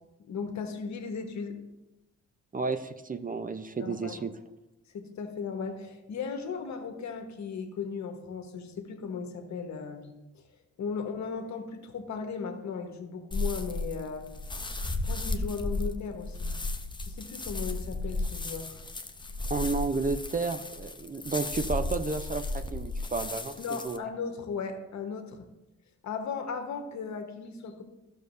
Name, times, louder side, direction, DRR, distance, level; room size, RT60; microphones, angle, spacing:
voice 1, 0.2-1.6 3.8-4.2 4.9-10.4 10.8-14.2 14.8-16.6 17.1-18.8 23.6-25.5 26.0-27.8, left 5 dB, 65° left, 5 dB, 1.3 m, -37 dB
voice 2, 2.5-4.3 19.5-22.4 22.7-23.5 23.8-24.0, right 4 dB, 25° right, 9 dB, 0.6 m, -31 dB
sound 1, 13.3-24.0, left 2 dB, 15° left, 0.7 m, -34 dB
12.0 x 6.6 x 2.6 m, 0.99 s
supercardioid pair, 60°, 31 cm